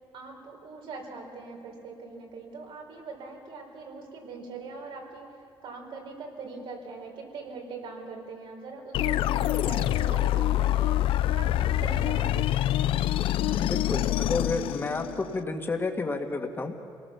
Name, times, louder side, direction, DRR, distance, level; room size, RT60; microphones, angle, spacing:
voice 1, 0.1-5.3 5.6-11.0 11.3-12.8, right 4 dB, 80° right, 0 dB, 4.6 m, -42 dB
sound 1, 8.9-15.4, left 13 dB, 85° left, 0.5 m, -26 dB
voice 2, 13.6-16.7, left 3 dB, 25° left, 4 dB, 1.9 m, -30 dB
27.0 x 18.5 x 7.1 m, 2.6 s
cardioid pair, 125°, 9 cm